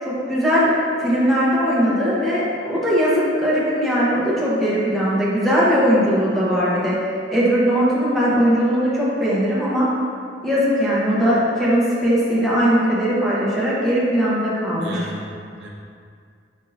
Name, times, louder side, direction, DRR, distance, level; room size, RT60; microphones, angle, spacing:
voice 1, 0.0-0.7 1.0-7.0 7.3-9.9 10.4-15.0, equal, ahead, -9 dB, 0.9 m, -19 dB
voice 2, 14.7-15.7, right 1 dB, 75° right, -2 dB, 0.6 m, -35 dB
5.1 x 3.5 x 2.6 m, 2.3 s
head